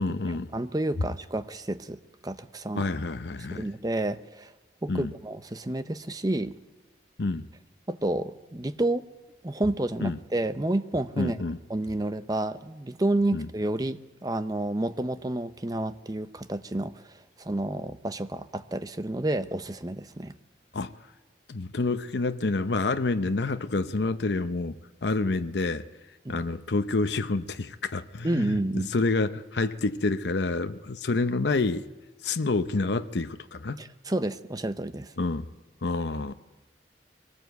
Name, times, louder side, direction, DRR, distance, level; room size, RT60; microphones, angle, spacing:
voice 1, 0.0-0.5 2.7-3.7 4.9-5.1 7.2-7.5 10.0-10.2 11.2-11.6 13.3-13.5 20.7-21.0 21.5-25.8 26.3-31.9 32.2-33.8 35.2-35.5 35.8-36.3, left 3 dB, 75° left, 0.7 m, -28 dB
voice 2, 0.5-2.9 3.5-4.5 4.8-6.5 7.9-9.1 9.4-11.4 11.7-17.0 17.4-20.3 26.2-26.4 28.2-28.9 33.8-35.1, right 1 dB, 20° right, 0.7 m, -30 dB
23.0 x 18.5 x 8.1 m
head